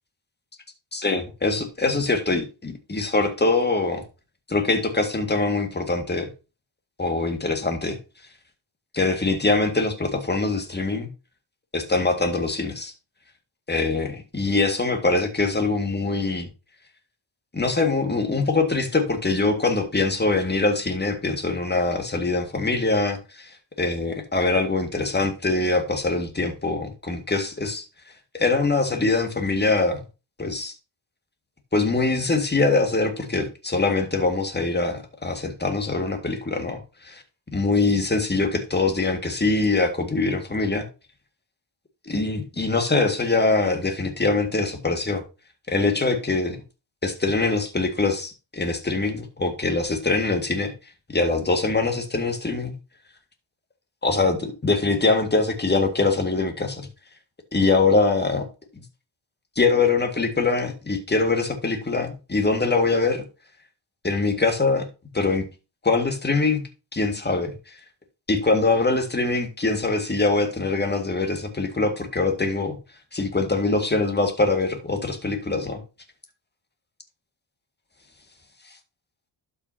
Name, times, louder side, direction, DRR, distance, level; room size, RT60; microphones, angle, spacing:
voice 1, 0.9-4.0 4.5-6.3 7.0-8.0 8.9-11.1 11.7-12.9 13.7-16.5 17.5-27.8 28.3-30.0 30.4-30.7 31.7-36.8 37.0-37.2 37.5-40.9 42.1-45.2 45.7-46.6 47.0-50.7 51.1-52.7 54.0-56.9 57.5-58.5 59.6-63.2 64.0-64.9 65.1-65.4 65.8-66.6 66.9-67.8 68.3-72.8 73.1-75.8, left 3 dB, 20° left, 1.9 m, -23 dB
12.0 x 5.7 x 2.8 m
cardioid pair, 90°, 48 cm